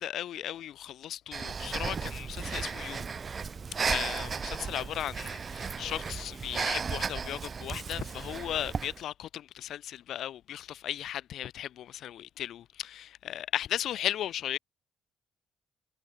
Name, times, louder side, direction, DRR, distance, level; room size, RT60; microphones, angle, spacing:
voice 1, 0.0-3.1 3.9-14.6, left 11 dB, 75° left, 1.5 m, -36 dB
Breathing, 1.3-9.0, right 5 dB, 40° right, 0.7 m, -35 dB
cardioid pair, 90°, 0 cm